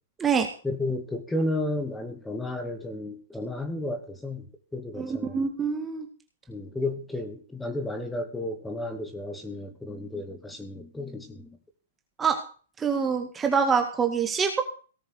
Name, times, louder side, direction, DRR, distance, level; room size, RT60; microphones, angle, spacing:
voice 1, 0.6-5.4 6.5-11.6, left 1 dB, 5° left, 8 dB, 2.5 m, -33 dB
voice 2, 4.9-6.1 12.2-12.4 12.8-14.6, right 6 dB, 15° right, 4 dB, 2.0 m, -25 dB
18.0 x 7.2 x 6.6 m, 0.38 s
hypercardioid pair, 145°, 0 cm